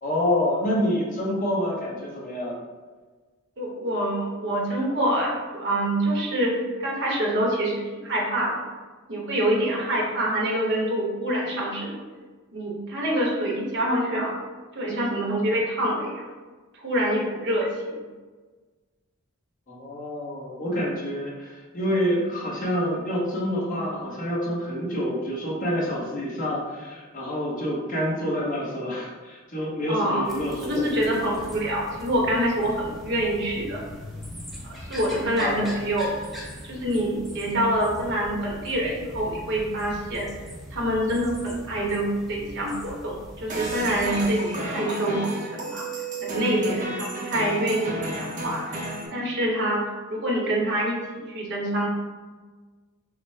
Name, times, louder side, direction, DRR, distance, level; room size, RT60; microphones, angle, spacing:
voice 1, 0.0-2.5 19.7-30.9 35.4-35.7, equal, 40° left, -4 dB, 1.0 m, -27 dB
voice 2, 3.6-8.6 9.1-12.0 12.5-14.3 14.7-16.2 16.8-17.7 29.9-30.3 30.6-33.8 34.9-36.1 36.6-40.3 40.7-45.9 46.2-48.8 49.1-49.8 50.1-51.9, right 1 dB, 55° right, -3 dB, 1.1 m, -26 dB
sound 1, 30.2-44.3, equal, ahead, 0.6 m, -41 dB
sound 2, 43.5-49.1, right 1 dB, 35° right, 0.7 m, -32 dB
5.8 x 2.1 x 3.3 m, 1.4 s
head